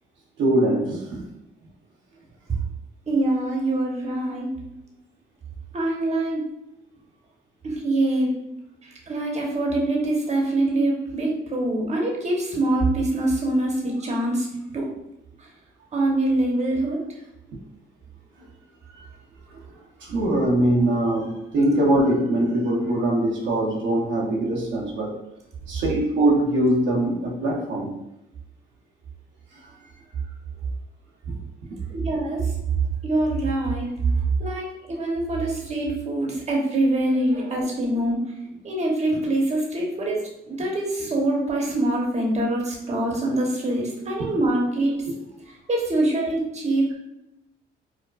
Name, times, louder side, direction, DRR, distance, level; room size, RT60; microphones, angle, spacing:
voice 1, 0.4-1.2 18.4-18.5 19.0-19.1 19.5-19.6 20.0-25.2 25.7-28.0 29.5-29.7 31.3-31.4 31.7-31.8 37.4-37.5 45.1-45.2, right 1 dB, 70° right, -3 dB, 0.8 m, -22 dB
voice 2, 3.1-4.5 5.7-6.4 7.6-8.3 8.8-14.5 14.7-14.9 15.4-15.5 15.9-17.0 31.9-32.5 33.0-34.0 34.4-38.2 38.6-44.9 45.5-46.9, right 1 dB, 35° right, -2 dB, 0.9 m, -24 dB
4.7 x 2.1 x 2.3 m, 0.86 s
cardioid pair, 90°, 20 cm